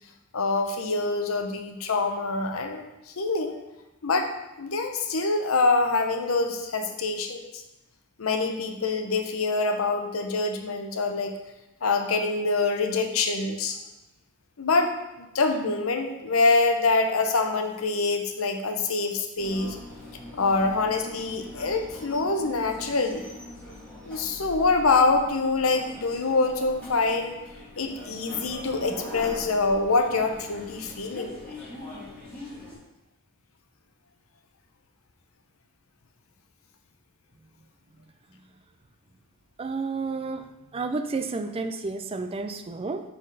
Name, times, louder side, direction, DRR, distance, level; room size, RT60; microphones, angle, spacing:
voice 1, 0.3-3.6 4.0-4.3 4.6-7.6 8.2-11.3 11.8-13.8 14.6-19.8 20.4-23.3 24.0-27.4 27.8-31.4, left 3 dB, 80° left, 5 dB, 0.8 m, -25 dB
sound 1, 19.4-32.7, left 1 dB, 5° left, 2.4 m, -42 dB
voice 2, 39.6-43.0, right 3 dB, 25° right, 8 dB, 0.4 m, -31 dB
5.8 x 5.2 x 4.0 m, 0.97 s
head